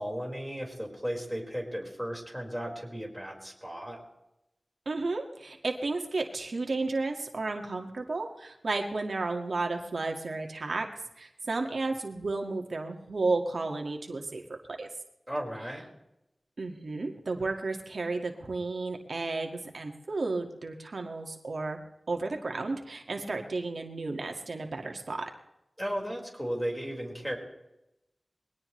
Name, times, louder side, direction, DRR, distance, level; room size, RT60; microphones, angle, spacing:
voice 1, 0.0-4.0 15.3-15.8 25.8-27.4, equal, ahead, 0 dB, 5.1 m, -35 dB
voice 2, 4.9-10.9 11.2-14.4 14.7-14.9 16.6-21.8 22.1-25.3, right 3 dB, 85° right, 3 dB, 1.9 m, -33 dB
22.5 x 18.5 x 3.3 m, 0.90 s
wide cardioid pair, 65°, 0 cm